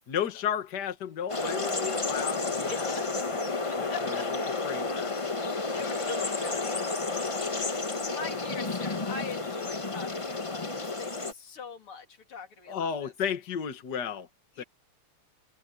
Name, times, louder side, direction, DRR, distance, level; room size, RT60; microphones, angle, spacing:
voice 1, 0.1-3.4 3.7-4.2 4.6-5.1 12.7-14.3 14.6-14.7, left 8 dB, 55° left, 2.0 m, -33 dB
sound 1, 1.3-11.3, left 3 dB, 30° left, 0.6 m, -31 dB
voice 2, 2.7-3.0 3.6-4.3 5.5-13.1 14.6-14.7, left 5 dB, 80° left, 3.4 m, -42 dB
omnidirectional pair, 2.4 m